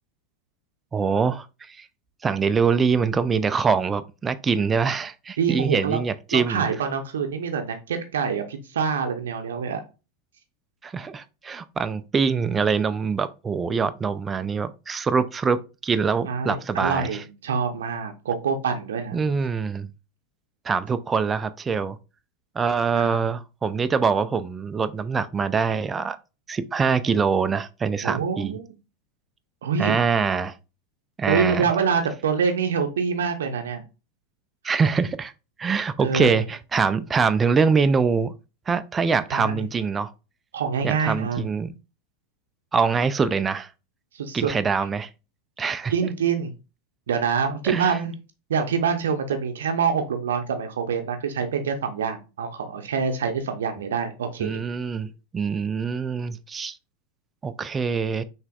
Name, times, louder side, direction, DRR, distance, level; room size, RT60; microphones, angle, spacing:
voice 1, 0.9-1.9 2.2-6.6 10.8-17.2 19.1-19.9 20.6-22.0 22.6-26.2 26.5-28.6 29.8-30.5 31.2-31.7 34.6-35.3 35.6-38.3 38.7-40.1 40.8-41.7 42.7-43.7 44.3-45.1 45.6-46.1 47.6-48.0 54.4-56.8 57.4-58.2, right 5 dB, 20° right, 0.4 m, -24 dB
voice 2, 5.4-6.0 6.3-9.8 13.7-13.9 16.2-19.2 22.9-23.2 28.0-28.7 29.6-30.0 31.3-33.8 36.0-36.4 39.3-39.6 40.5-41.4 44.1-44.5 45.9-46.5 47.1-48.1 48.5-54.6, right 6 dB, 70° right, 0.6 m, -26 dB
5.6 x 3.2 x 2.3 m
figure-of-eight pair, 85°, 0 cm